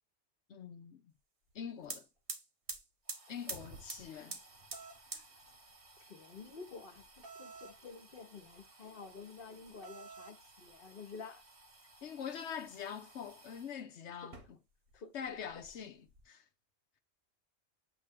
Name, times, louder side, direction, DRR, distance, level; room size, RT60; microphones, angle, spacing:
voice 1, 0.5-1.1 1.5-2.1 3.3-4.4 12.0-14.6 15.1-16.4, left 7 dB, 80° left, 1.0 m, -44 dB
sound 1, 1.5-1.6 1.8-13.7 14.2-15.0 15.2-16.2, right 3 dB, 70° right, 1.7 m, -51 dB
sound 2, 4.7-5.0 7.2-7.8 9.8-10.4, right 4 dB, 55° right, 1.3 m, -51 dB
voice 2, 6.1-11.4 14.2-14.4 14.9-15.2, left 5 dB, 50° left, 1.1 m, -50 dB
8.2 x 3.2 x 3.5 m
omnidirectional pair, 1.2 m